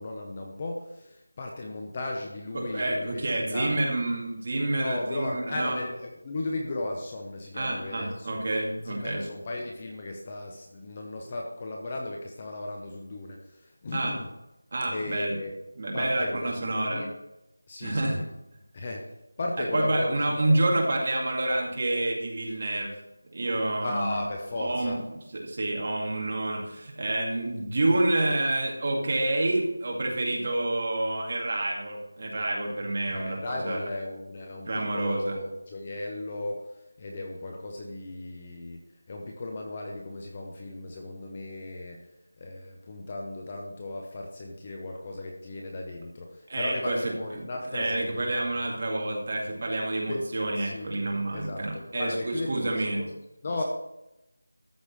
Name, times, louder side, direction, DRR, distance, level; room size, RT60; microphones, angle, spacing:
voice 1, 0.0-3.7 4.8-8.3 8.8-14.3 14.9-15.5 15.9-17.1 17.7-18.2 18.7-19.1 19.4-20.6 23.8-25.0 33.1-36.6 37.0-38.8 39.1-42.1 42.4-48.2 50.1-50.2 50.6-50.9 51.3-53.1 53.4-53.6, left 2 dB, 20° left, 1 dB, 0.8 m, -36 dB
voice 2, 2.5-5.8 7.5-9.2 13.9-14.2 14.7-15.4 15.8-17.1 17.8-18.2 19.6-22.9 23.3-24.2 24.6-25.0 25.3-33.8 34.7-35.4 46.5-53.0, right 2 dB, 30° right, -1 dB, 2.1 m, -28 dB
13.5 x 5.3 x 6.4 m, 0.90 s
figure-of-eight pair, 180°, 0 cm